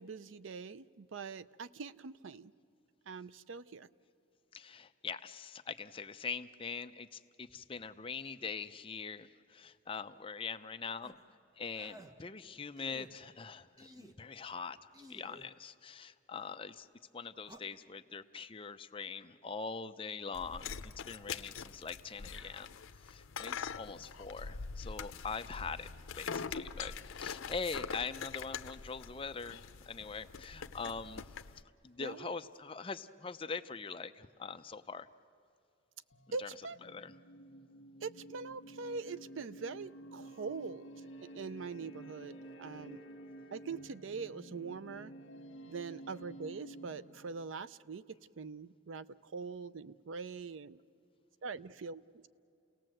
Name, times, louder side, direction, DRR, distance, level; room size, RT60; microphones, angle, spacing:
voice 1, 0.0-2.5 3.1-3.9 32.0-32.3 36.3-36.8 38.0-40.9 41.2-43.0 43.5-45.1 45.6-50.8 51.4-52.3, right 4 dB, 75° right, 16 dB, 0.5 m, -43 dB
voice 2, 4.5-11.1 11.6-16.9 17.1-25.9 26.1-31.3 31.8-35.1 36.3-36.5 36.8-37.1, left 5 dB, 25° left, 9 dB, 0.5 m, -43 dB
sound 1, 11.0-11.2 11.7-12.1 12.8-13.1 13.8-14.2 14.9-15.5 17.4-17.6, equal, 20° right, 1.0 m, -54 dB
sound 2, 20.3-31.6, left 6 dB, 85° left, 0.6 m, -44 dB
sound 3, 36.1-47.5, right 1 dB, 65° left, 1.4 m, -51 dB
30.0 x 18.0 x 7.7 m, 2.7 s
head